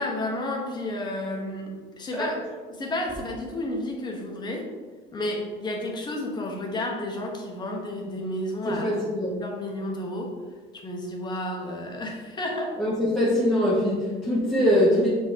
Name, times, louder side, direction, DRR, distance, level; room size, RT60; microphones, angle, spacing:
voice 1, 0.0-2.3 2.7-4.7 5.1-9.0 9.4-10.4 10.7-12.8, left 1 dB, 20° left, 0 dB, 1.1 m, -31 dB
voice 2, 8.6-9.4 12.8-15.1, equal, 5° left, -10 dB, 1.3 m, -23 dB
6.2 x 4.4 x 3.6 m, 1.4 s
cardioid pair, 145°, 19 cm